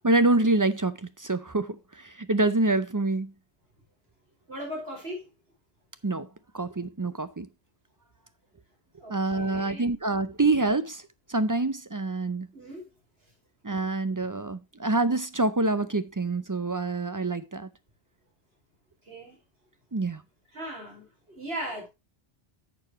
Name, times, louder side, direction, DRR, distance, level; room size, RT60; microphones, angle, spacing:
voice 1, 0.0-3.3 6.0-6.3 6.5-7.5 9.1-11.0 11.3-12.5 13.6-17.7 19.9-20.2, right 2 dB, 30° right, 0.3 m, -26 dB
voice 2, 4.5-5.3 9.0-9.9 12.5-12.9 19.0-19.4 20.5-21.9, right 1 dB, 60° right, 5.1 m, -38 dB
11.0 x 6.9 x 3.0 m
omnidirectional pair, 1.2 m